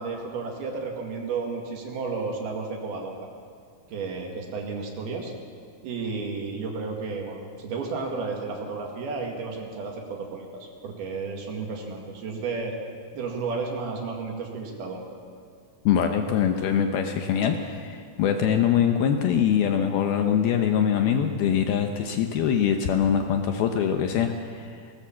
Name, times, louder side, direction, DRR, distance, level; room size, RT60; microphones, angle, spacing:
voice 1, 0.0-3.3 3.9-5.3 5.8-12.8 13.1-15.0, right 4 dB, 60° right, 1 dB, 3.6 m, -32 dB
voice 2, 15.9-24.8, left 8 dB, 75° left, 5 dB, 2.3 m, -23 dB
19.5 x 19.0 x 7.3 m, 2.1 s
omnidirectional pair, 5.4 m